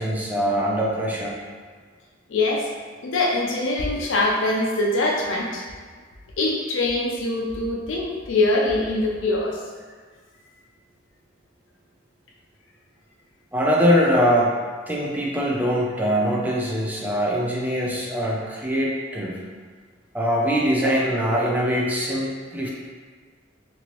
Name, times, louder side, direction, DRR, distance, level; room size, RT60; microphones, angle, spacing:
voice 1, 0.0-1.4 13.5-14.5 14.9-19.4 20.1-22.7, equal, 10° right, -4 dB, 0.4 m, -22 dB
voice 2, 2.3-2.7 3.0-5.6 6.4-9.6, left 2 dB, 70° left, -1 dB, 0.5 m, -23 dB
3.0 x 2.6 x 3.0 m, 1.5 s
head